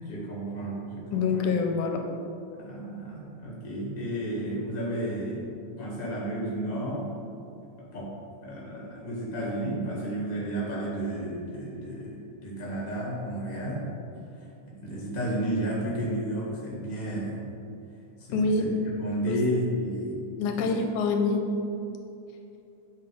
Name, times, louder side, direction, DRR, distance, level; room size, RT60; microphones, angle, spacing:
voice 1, 0.0-1.5 2.5-5.4 5.8-7.0 7.9-8.2 8.4-13.8 14.4-17.4 18.2-20.2 20.6-20.7, right 1 dB, 25° left, -4 dB, 1.3 m, -32 dB
voice 2, 1.1-2.0 18.3-18.7 19.3-19.4 20.4-21.4, left 4 dB, 85° left, 4 dB, 2.0 m, -26 dB
8.5 x 4.4 x 5.0 m, 2.7 s
omnidirectional pair, 3.6 m